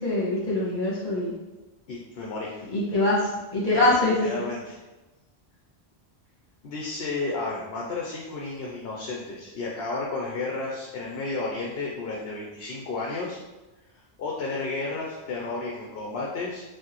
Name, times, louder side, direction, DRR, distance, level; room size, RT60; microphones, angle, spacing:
voice 1, 0.0-1.3 2.7-4.1, left 2 dB, 45° left, -7 dB, 1.8 m, -24 dB
voice 2, 1.9-2.6 3.7-4.8 6.6-13.4 14.2-16.6, left 3 dB, 70° left, -3 dB, 0.9 m, -32 dB
6.1 x 2.5 x 3.1 m, 1.1 s
omnidirectional pair, 1.1 m